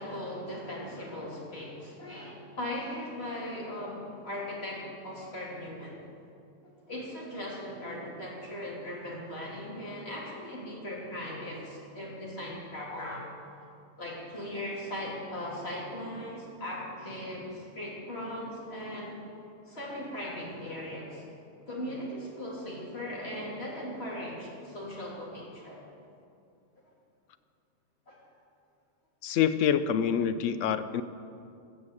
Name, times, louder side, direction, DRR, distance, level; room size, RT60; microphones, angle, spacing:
voice 1, 0.0-6.0 6.9-13.2 14.0-19.2 19.7-21.2 21.7-25.8 28.1-28.2, left 1 dB, 45° left, -4 dB, 3.0 m, -38 dB
voice 2, 29.2-31.0, left 8 dB, 70° left, 12 dB, 0.9 m, -26 dB
14.5 x 6.8 x 8.3 m, 2.5 s
omnidirectional pair, 1.5 m